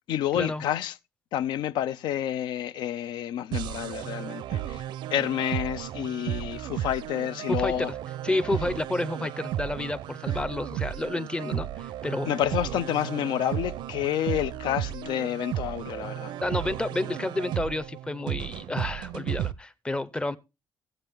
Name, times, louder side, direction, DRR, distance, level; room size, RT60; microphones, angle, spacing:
voice 1, 0.1-1.0 1.3-4.8 5.1-7.9 12.2-16.3, left 11 dB, 85° left, 0.6 m, -29 dB
sound 1, 3.5-19.5, right 12 dB, 85° right, 0.5 m, -34 dB
voice 2, 7.5-8.0 8.2-12.3 16.4-20.4, left 2 dB, 10° left, 0.6 m, -30 dB
16.0 x 7.9 x 3.5 m
cardioid pair, 140°, 8 cm